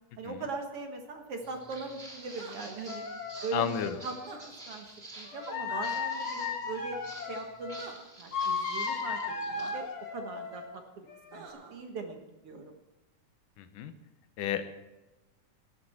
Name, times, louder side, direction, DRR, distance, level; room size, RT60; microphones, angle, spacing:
voice 1, 0.2-3.0 3.4-7.0 7.3-7.9 8.2-9.2 9.5-12.2 12.4-12.7, right 3 dB, 55° right, 4 dB, 2.0 m, -40 dB
Walk footsteps, 1.4-9.7, right 1 dB, 20° right, 3.2 m, -49 dB
sound 1, 2.3-2.6 4.2-4.4 5.7-5.9 7.8-8.0 9.6-9.7 11.3-11.7, right 5 dB, 70° right, 3.5 m, -46 dB
sound 2, 2.9-4.4 5.3-7.9 8.3-10.7 11.1-11.4, left 5 dB, 45° left, 2.5 m, -36 dB
voice 2, 3.5-3.9 13.6-13.9 14.4-14.7, left 8 dB, 85° left, 9 dB, 2.6 m, -31 dB
18.0 x 12.5 x 4.4 m, 1.0 s
omnidirectional pair, 3.6 m